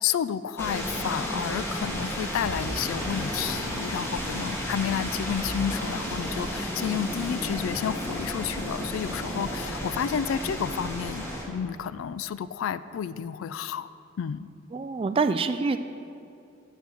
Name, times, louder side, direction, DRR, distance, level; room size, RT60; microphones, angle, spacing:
voice 1, 0.0-13.9 14.2-14.5, left 8 dB, 75° left, 14 dB, 0.3 m, -31 dB
sound 1, 0.6-11.4, equal, 15° left, 1.3 m, -32 dB
voice 2, 14.7-15.8, right 4 dB, 25° right, 10 dB, 0.3 m, -25 dB
11.5 x 7.0 x 4.4 m, 2.5 s
head